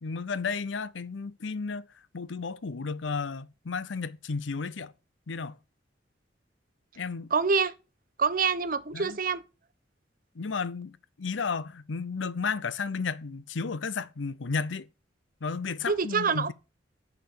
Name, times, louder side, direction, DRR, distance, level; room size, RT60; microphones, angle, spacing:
voice 1, 0.0-1.9 2.1-4.9 5.3-5.6 7.0-7.3 8.9-9.2 10.3-14.9 15.4-16.5, left 5 dB, 85° left, 0.7 m, -33 dB
voice 2, 7.3-7.7 8.2-9.4 15.9-16.5, right 5 dB, 50° right, 0.8 m, -26 dB
9.7 x 5.0 x 6.5 m
head